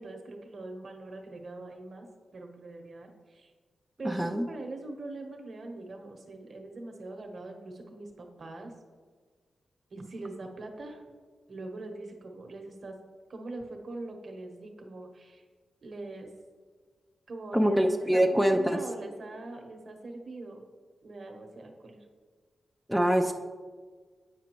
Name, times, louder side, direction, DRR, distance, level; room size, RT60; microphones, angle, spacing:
voice 1, 0.0-2.1 2.3-3.5 4.0-8.7 9.9-11.0 11.5-13.0 13.3-15.4 15.8-16.3 17.3-20.6 21.0-22.0, right 2 dB, 55° right, 3 dB, 0.9 m, -42 dB
voice 2, 4.0-4.4 17.5-18.8 22.9-23.3, equal, 5° right, 3 dB, 0.3 m, -24 dB
8.4 x 4.9 x 3.0 m, 1.5 s
wide cardioid pair, 95°, 0 cm